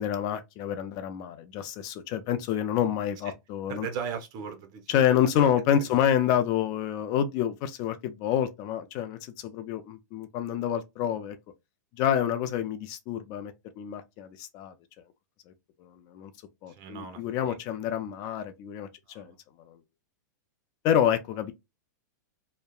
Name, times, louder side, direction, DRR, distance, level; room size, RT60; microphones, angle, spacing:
voice 1, 0.0-3.9 4.9-11.4 11.9-14.7 15.8-16.3 16.6-18.9 19.1-19.3 19.7-19.8 20.8-21.5, left 9 dB, 40° left, 0.4 m, -28 dB
voice 2, 3.7-5.2 5.8-6.1 16.7-17.6 19.1-19.3, right 7 dB, 40° right, 0.7 m, -38 dB
2.7 x 2.1 x 2.3 m
hypercardioid pair, 120°, 10 cm